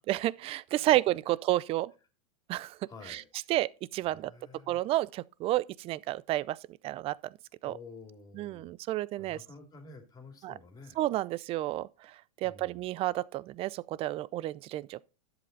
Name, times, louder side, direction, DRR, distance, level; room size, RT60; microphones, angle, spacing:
voice 1, 0.1-1.9 2.5-2.8 3.1-3.2 3.5-4.3 4.7-6.6 6.8-7.3 7.6-7.7 8.4-9.4 10.4-10.5 11.0-15.0, right 16 dB, 30° right, 0.5 m, -31 dB
voice 2, 2.9-3.5 4.0-4.8 7.6-11.0 12.4-13.0, left 4 dB, 20° left, 2.6 m, -51 dB
11.0 x 7.7 x 3.9 m
hypercardioid pair, 120°, 18 cm